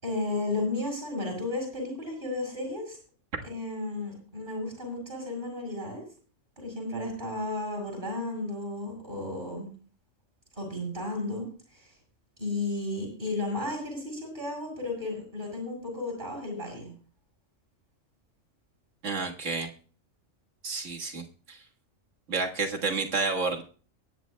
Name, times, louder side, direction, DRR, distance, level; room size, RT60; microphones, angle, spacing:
voice 1, 0.0-3.0 3.4-6.0 6.6-9.7 10.6-11.4 11.7-11.9 12.4-16.9, left 2 dB, 40° right, 0 dB, 6.9 m, -33 dB
voice 2, 19.0-19.7 20.6-21.6 22.3-23.6, right 4 dB, 70° right, 2 dB, 1.9 m, -30 dB
23.0 x 10.5 x 2.2 m, 0.40 s
omnidirectional pair, 1.3 m